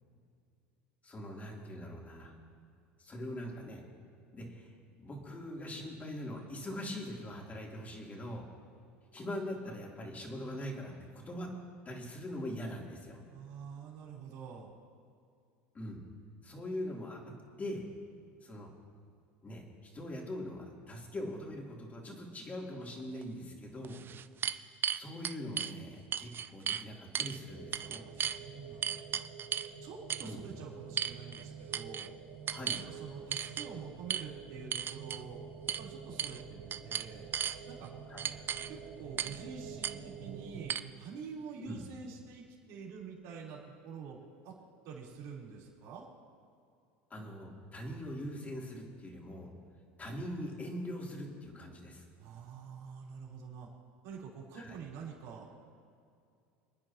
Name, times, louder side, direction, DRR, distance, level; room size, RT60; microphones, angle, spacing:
voice 1, 1.0-2.3 3.0-3.8 4.3-4.7 5.0-8.4 9.1-11.5 11.8-13.2 15.7-16.0 16.4-17.2 17.6-17.8 18.4-18.7 19.4-24.0 24.9-28.0 30.2-30.5 32.5-32.7 38.1-38.2 41.6-41.8 47.1-49.5 50.0-52.0 54.5-54.8, left 1 dB, 25° left, -2 dB, 3.4 m, -42 dB
voice 2, 13.3-14.7 24.0-24.5 27.8-29.2 29.8-32.1 32.7-35.4 35.8-37.3 37.7-37.9 38.7-44.2 44.4-44.5 44.8-46.1 52.2-53.7 54.0-55.5, right 6 dB, 65° right, -4 dB, 4.1 m, -47 dB
sound 1, 23.2-23.3 23.8-25.7 26.1-26.8 27.1-27.4 27.7-28.4 28.8-29.7 30.1-30.3 31.0-31.4 31.7-32.1 32.5-32.9 33.3-33.7 34.1-34.2 34.7-35.2 35.7-35.8 36.2-36.4 36.7-37.6 38.2-38.7 39.2-39.4 39.8-39.9 40.7-40.8, right 8 dB, 35° right, 0.6 m, -35 dB
sound 2, 27.5-40.8, right 6 dB, 85° right, 1.8 m, -48 dB
28.0 x 9.8 x 3.1 m, 2.4 s
hypercardioid pair, 90°, 6 cm